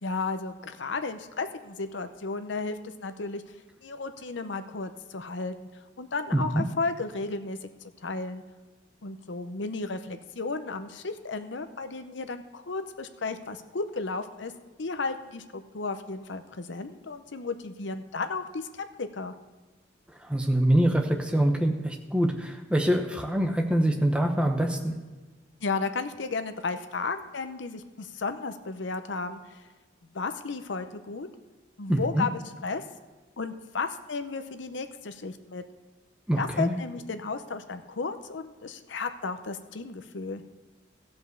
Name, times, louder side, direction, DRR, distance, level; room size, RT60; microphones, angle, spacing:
voice 1, 0.0-5.7 6.0-7.7 8.0-8.4 9.0-14.5 14.8-19.3 25.6-29.6 30.1-31.3 31.8-32.8 33.4-35.6 36.4-40.4, left 4 dB, 75° left, 9 dB, 0.7 m, -34 dB
voice 2, 6.3-6.6 20.2-24.9 31.9-32.3 36.3-36.7, right 1 dB, 5° right, 3 dB, 0.9 m, -25 dB
15.0 x 5.3 x 6.6 m, 1.3 s
head